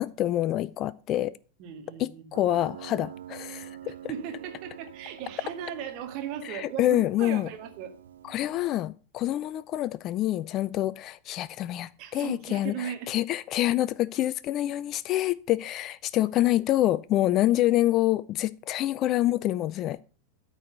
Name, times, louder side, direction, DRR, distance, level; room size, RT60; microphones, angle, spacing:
voice 1, 0.0-1.4 2.0-3.9 6.5-7.5 8.2-20.0, left 14 dB, 35° left, 0.4 m, -27 dB
voice 2, 1.6-2.5 4.1-7.9 12.0-13.2, right 9 dB, 40° right, 2.0 m, -37 dB
Piano, 2.3-8.8, right 10 dB, 65° right, 0.5 m, -46 dB
13.0 x 4.8 x 6.8 m
figure-of-eight pair, 90°, 0 cm